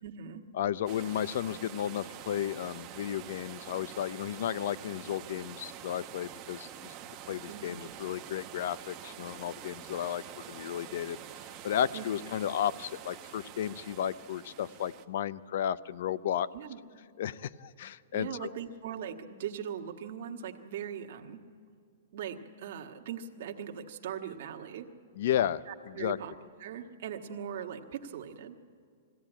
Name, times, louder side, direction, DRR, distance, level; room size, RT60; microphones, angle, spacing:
voice 1, 0.0-0.4 7.5-7.8 11.9-12.1 16.5-16.8 18.1-21.4 22.1-24.9 25.7-26.3 26.6-28.6, right 8 dB, 50° right, 3 dB, 1.5 m, -40 dB
voice 2, 0.5-6.9 7.3-11.2 11.6-16.5 17.2-18.5 25.2-26.2, left 10 dB, 55° left, 18 dB, 0.5 m, -33 dB
sound 1, 0.9-15.0, right 10 dB, 25° right, 0.8 m, -46 dB
21.0 x 16.0 x 9.1 m, 2.3 s
hypercardioid pair, 170°, 0 cm